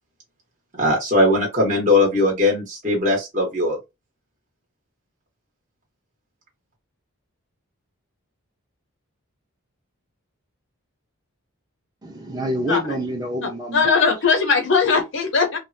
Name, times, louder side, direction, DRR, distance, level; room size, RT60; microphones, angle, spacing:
voice 1, 0.8-3.8, left 1 dB, 35° right, 1.1 m, -19 dB
voice 2, 12.0-14.0, equal, 20° right, 0.8 m, -27 dB
voice 3, 13.7-15.6, left 5 dB, 55° left, 0.7 m, -19 dB
3.4 x 2.1 x 2.6 m
head